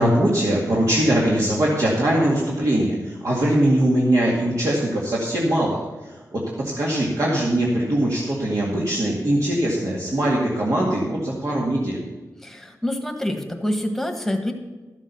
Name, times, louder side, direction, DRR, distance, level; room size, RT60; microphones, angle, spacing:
voice 1, 0.0-12.0, right 1 dB, 55° right, -4 dB, 2.2 m, -21 dB
voice 2, 12.4-14.5, left 1 dB, 5° left, 4 dB, 1.5 m, -26 dB
12.5 x 7.4 x 6.9 m, 1.2 s
wide cardioid pair, 110°, 7 cm